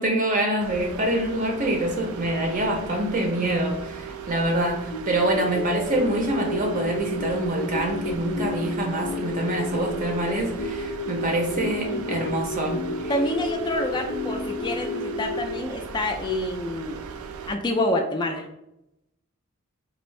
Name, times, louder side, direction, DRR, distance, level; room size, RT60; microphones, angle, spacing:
voice 1, 0.0-13.1, right 1 dB, 40° right, 1 dB, 0.5 m, -25 dB
sound 1, 0.6-17.5, right 6 dB, 85° right, 0.4 m, -38 dB
sound 2, 4.9-15.6, left 2 dB, 75° left, 0.5 m, -32 dB
voice 2, 11.9-12.3 13.1-17.0 17.5-18.5, left 1 dB, 20° left, 3 dB, 0.3 m, -27 dB
3.4 x 2.5 x 3.1 m, 0.85 s
head